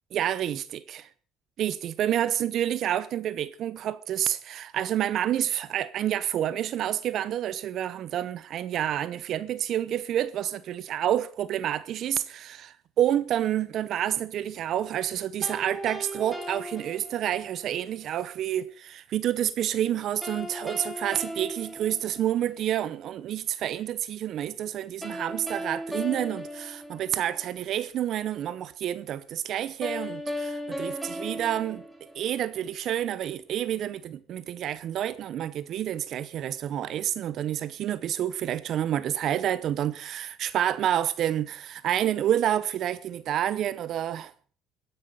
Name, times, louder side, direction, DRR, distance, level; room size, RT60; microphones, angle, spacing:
voice 1, 0.1-1.1 1.6-31.8 32.1-44.3, right 11 dB, 55° right, 0.7 m, -29 dB
sound 1, 15.4-17.6 20.2-22.6 25.0-27.5 29.8-32.6, equal, ahead, 2.6 m, -37 dB
15.5 x 10.0 x 6.7 m
cardioid pair, 115°, 0 cm